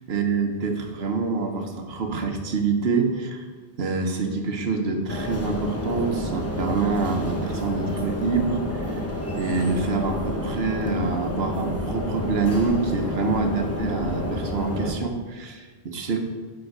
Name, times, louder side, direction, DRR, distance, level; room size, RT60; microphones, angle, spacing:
voice 1, 0.1-3.5 3.8-9.0 9.3-16.2, right 4 dB, 70° right, 5 dB, 1.1 m, -26 dB
sound 1, 5.1-14.9, left 1 dB, 15° left, 0.7 m, -29 dB
6.4 x 5.8 x 4.6 m, 1.4 s
omnidirectional pair, 1.1 m